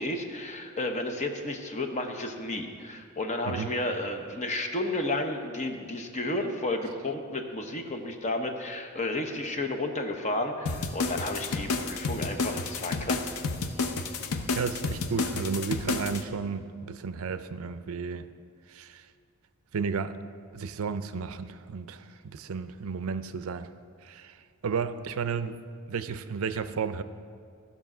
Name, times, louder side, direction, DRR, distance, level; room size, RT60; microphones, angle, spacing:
voice 1, 0.0-13.3, left 2 dB, 30° left, 4 dB, 0.9 m, -32 dB
sound 1, 10.7-16.2, left 4 dB, 80° left, 0.7 m, -31 dB
voice 2, 14.5-18.3 18.7-19.0 19.7-20.2 20.5-23.7 24.0-24.4 24.6-25.6 25.9-27.0, right 5 dB, 65° right, 12 dB, 0.5 m, -33 dB
13.5 x 5.5 x 6.0 m, 2.3 s
head